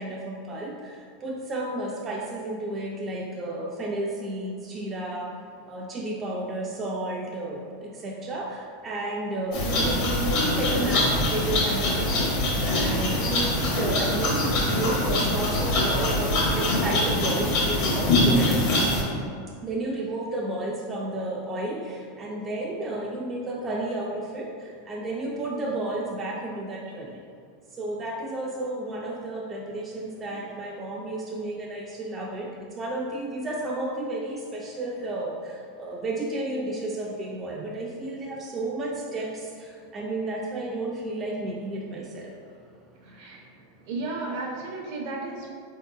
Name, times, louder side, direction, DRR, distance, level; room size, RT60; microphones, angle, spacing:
voice 1, 0.0-5.4 5.7-18.9 19.6-27.2 27.7-43.9, right 2 dB, 25° right, -2 dB, 0.3 m, -32 dB
sound 1, 9.5-19.0, left 1 dB, 60° left, 0.8 m, -24 dB
voice 2, 43.0-43.4 43.9-45.5, right 3 dB, 65° right, -1 dB, 0.7 m, -34 dB
3.6 x 2.7 x 2.2 m, 2.2 s
hypercardioid pair, 100°, 0 cm